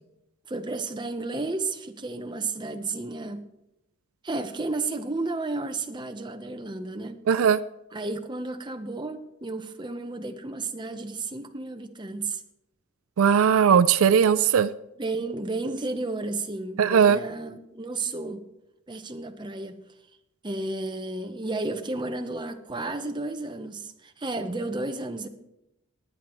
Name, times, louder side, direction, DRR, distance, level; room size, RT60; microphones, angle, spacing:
voice 1, 0.5-3.4 4.2-7.2 7.9-12.4 15.0-18.4 18.9-19.8 20.4-25.3, right 2 dB, 20° right, 0.8 m, -32 dB
voice 2, 7.3-7.6 13.2-14.7 16.8-17.2, right 7 dB, 75° right, 0.4 m, -19 dB
19.0 x 10.0 x 3.0 m
head